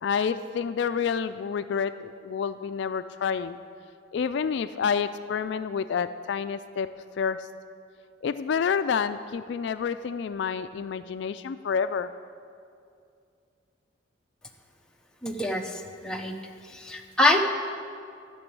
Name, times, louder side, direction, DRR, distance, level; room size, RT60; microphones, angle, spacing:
voice 1, 0.0-3.6 4.1-6.9 7.2-7.5 8.2-12.1, left 6 dB, 60° left, 12 dB, 0.3 m, -28 dB
voice 2, 15.2-16.3 16.6-17.4, left 1 dB, 5° left, 1 dB, 0.7 m, -25 dB
12.0 x 6.1 x 8.6 m, 2.4 s
head